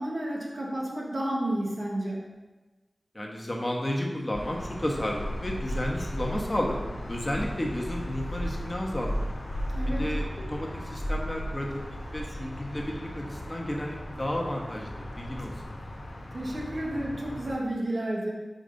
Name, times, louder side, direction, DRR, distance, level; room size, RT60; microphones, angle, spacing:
voice 1, 0.0-2.2 9.7-10.1 16.3-18.3, right 1 dB, 65° right, -4 dB, 1.6 m, -31 dB
voice 2, 3.1-6.8 7.1-9.1 10.0-11.7 12.1-15.5, left 1 dB, 30° left, -1 dB, 1.2 m, -32 dB
sound 1, 4.3-17.5, equal, 75° left, 1.0 m, -35 dB
5.2 x 5.1 x 4.0 m, 1.2 s
wide cardioid pair, 50°, 0 cm